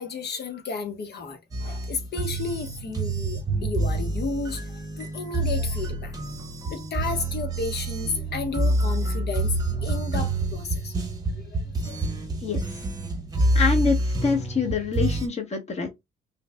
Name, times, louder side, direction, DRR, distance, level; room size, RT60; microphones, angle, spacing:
voice 1, 0.0-6.2 6.7-10.9 11.4-12.0, left 5 dB, 55° left, 1.2 m, -33 dB
sound 1, 1.5-15.3, right 2 dB, 20° right, 1.0 m, -27 dB
voice 2, 12.4-12.9 13.5-15.9, left 5 dB, 35° left, 1.1 m, -26 dB
5.5 x 2.3 x 2.3 m
cardioid pair, 90°, 20 cm